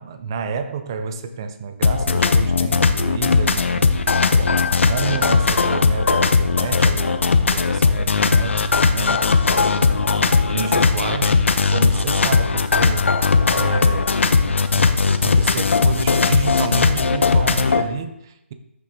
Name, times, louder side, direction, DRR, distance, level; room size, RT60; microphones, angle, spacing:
voice 1, 0.0-4.0 4.3-11.4 11.6-13.1 13.5-14.2 14.7-18.5, right 5 dB, 15° right, 9 dB, 0.5 m, -30 dB
sound 1, 1.8-17.8, left 4 dB, 65° left, 0.9 m, -18 dB
14.0 x 6.3 x 3.6 m, 0.84 s
hypercardioid pair, 175°, 7 cm